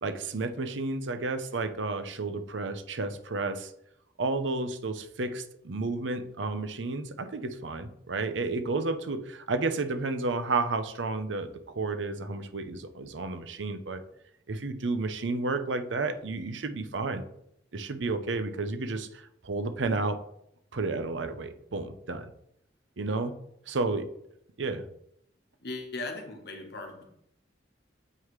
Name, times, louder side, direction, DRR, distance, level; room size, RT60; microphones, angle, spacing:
voice 1, 0.0-3.7 4.2-14.0 14.5-17.2 17.7-20.2 20.7-22.2 23.0-23.3 23.7-24.0 24.6-24.8, right 3 dB, 90° right, 9 dB, 0.7 m, -31 dB
voice 2, 25.6-27.1, left 2 dB, 60° left, 3 dB, 1.2 m, -38 dB
7.7 x 4.8 x 3.1 m, 0.74 s
head